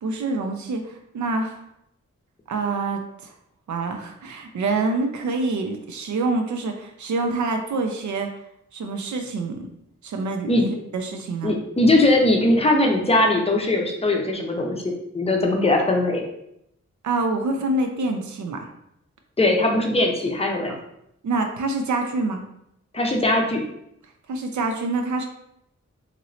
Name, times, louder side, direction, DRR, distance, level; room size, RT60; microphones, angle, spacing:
voice 1, 0.0-1.6 2.5-3.3 3.7-8.3 8.7-9.7 10.0-11.5 17.0-18.7 21.2-22.4 24.3-25.3, right 3 dB, 80° right, 4 dB, 0.5 m, -26 dB
voice 2, 11.4-16.2 19.4-20.7 22.9-23.6, left 2 dB, 20° left, 1 dB, 0.5 m, -20 dB
3.0 x 2.9 x 2.6 m, 0.78 s
wide cardioid pair, 125°, 29 cm